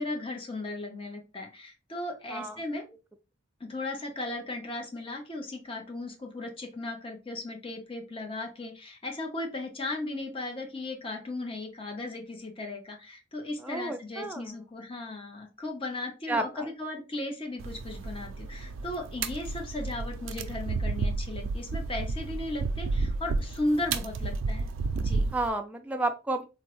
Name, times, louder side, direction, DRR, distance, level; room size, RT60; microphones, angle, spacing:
voice 1, 0.0-2.8 3.6-24.7 25.0-25.3, left 2 dB, 30° left, 2 dB, 0.6 m, -36 dB
voice 2, 13.6-14.5 16.3-16.7 25.3-26.5, right 2 dB, 10° right, 5 dB, 0.3 m, -31 dB
sound 1, 17.6-25.5, right 3 dB, 90° right, 0.4 m, -32 dB
3.5 x 2.0 x 2.9 m, 0.29 s
head